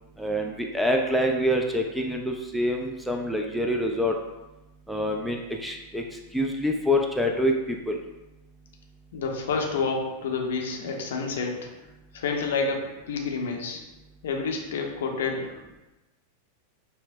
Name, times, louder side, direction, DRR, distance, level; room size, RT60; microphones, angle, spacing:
voice 1, 0.2-4.2 4.9-6.0 6.3-8.0, equal, ahead, 1 dB, 0.3 m, -26 dB
voice 2, 9.1-11.7 12.1-13.8 14.2-15.5, left 4 dB, 60° left, 1 dB, 0.6 m, -29 dB
5.6 x 2.1 x 2.6 m, 1.0 s
figure-of-eight pair, 90°, 0 cm